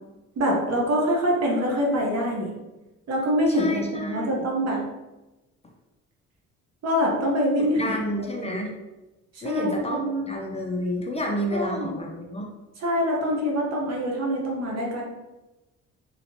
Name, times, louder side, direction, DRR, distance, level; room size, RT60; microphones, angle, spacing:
voice 1, 0.4-2.5 3.1-4.8 6.8-8.0 8.4-8.6 9.4-10.3 11.5-11.9 12.8-15.0, equal, 55° right, -2 dB, 1.0 m, -25 dB
voice 2, 3.5-4.4 7.6-8.7 9.4-10.0 10.3-12.5, equal, 20° left, 0 dB, 0.5 m, -30 dB
3.1 x 2.9 x 2.8 m, 1.1 s
cardioid pair, 90°, 30 cm